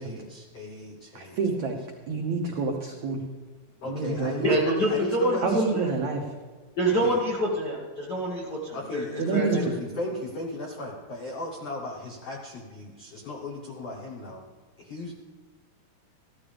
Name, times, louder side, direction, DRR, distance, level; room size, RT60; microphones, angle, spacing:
voice 1, 0.0-1.4 3.8-5.8 7.0-7.2 8.7-14.4 14.8-15.1, left 1 dB, 80° left, -1 dB, 1.3 m, -36 dB
voice 2, 1.1-1.8 2.1-3.2 3.8-4.3 5.4-6.2 9.2-9.6, right 4 dB, 85° right, 1 dB, 1.6 m, -27 dB
voice 3, 4.4-5.4 5.7-5.9 6.8-9.0 9.3-9.5, right 1 dB, 50° left, -4 dB, 1.1 m, -26 dB
14.5 x 12.5 x 3.4 m, 1.4 s
omnidirectional pair, 4.8 m